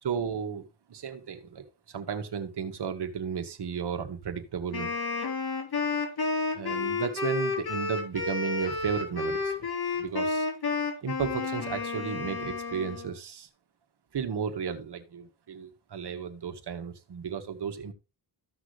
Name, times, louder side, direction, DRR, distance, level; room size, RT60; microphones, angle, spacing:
voice 1, 0.0-0.6 0.9-4.9 6.5-9.7 10.0-10.5 11.0-13.5 14.1-17.9, right 7 dB, 70° right, 7 dB, 1.9 m, -34 dB
Wind instrument woodwind instrument, 4.7-13.1, left 4 dB, 60° left, 3.8 m, -31 dB
15.0 x 6.2 x 3.2 m, 0.29 s
wide cardioid pair, 125°, 42 cm